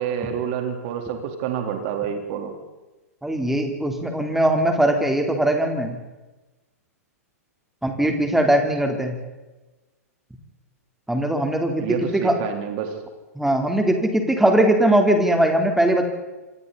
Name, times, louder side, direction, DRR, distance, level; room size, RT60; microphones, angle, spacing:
voice 1, 0.0-2.5 11.8-12.9, right 8 dB, 40° right, 5 dB, 3.7 m, -28 dB
voice 2, 3.2-6.0 7.8-9.2 11.1-12.4 13.4-16.0, right 1 dB, 5° right, 4 dB, 3.6 m, -20 dB
27.5 x 25.5 x 4.2 m, 1.1 s
figure-of-eight pair, 105°, 8 cm